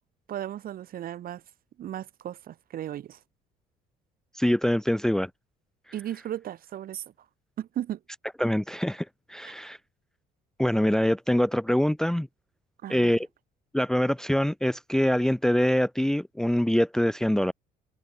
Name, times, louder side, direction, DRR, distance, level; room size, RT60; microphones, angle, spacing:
voice 1, 0.3-1.4 1.8-3.2 5.9-7.0 7.6-8.0 9.4-9.5 12.8-13.1, right 11 dB, 60° right, 2.6 m, -35 dB
voice 2, 4.3-5.3 8.4-9.8 10.6-12.3 12.9-13.3 13.7-17.5, left 1 dB, 5° left, 0.7 m, -24 dB
cardioid pair, 110°, 17 cm